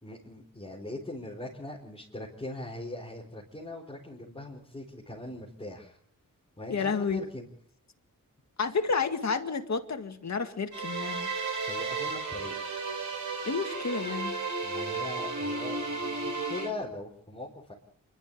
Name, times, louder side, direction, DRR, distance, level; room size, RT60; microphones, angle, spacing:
voice 1, 0.0-6.0 6.6-7.5 11.7-12.5 14.6-17.7, left 2 dB, 15° left, -4 dB, 4.3 m, -40 dB
voice 2, 6.7-7.2 8.6-11.3 13.4-14.4, left 5 dB, 55° left, 6 dB, 2.0 m, -30 dB
sound 1, 10.7-16.7, right 3 dB, 60° right, 6.5 m, -33 dB
27.0 x 12.5 x 8.5 m, 0.67 s
wide cardioid pair, 95°, 34 cm